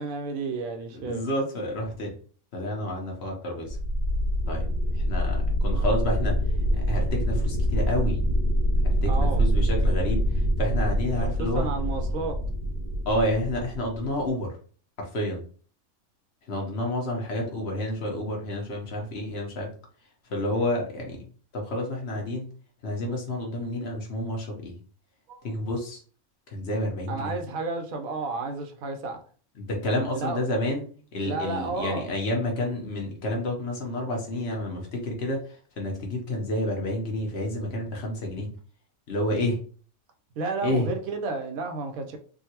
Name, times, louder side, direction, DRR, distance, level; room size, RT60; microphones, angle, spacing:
voice 1, 0.0-1.2 9.1-9.4 11.4-12.3 25.3-25.4 27.1-29.2 30.1-30.4 31.2-32.1 40.4-42.2, right 3 dB, 90° right, 5 dB, 1.1 m, -31 dB
voice 2, 0.9-2.1 2.5-3.8 4.5-4.6 4.9-6.4 6.7-8.2 8.8-11.7 13.1-14.5 15.0-15.4 16.5-19.7 20.3-21.2 21.5-22.5 22.8-24.8 25.4-26.0 26.5-27.3 29.6-30.8 31.1-38.5 39.1-39.6 40.6-40.9, left 1 dB, 55° left, 0 dB, 1.0 m, -29 dB
sound 1, 3.7-14.3, equal, 70° right, 0.9 m, -25 dB
3.7 x 2.2 x 2.8 m, 0.42 s
omnidirectional pair, 1.4 m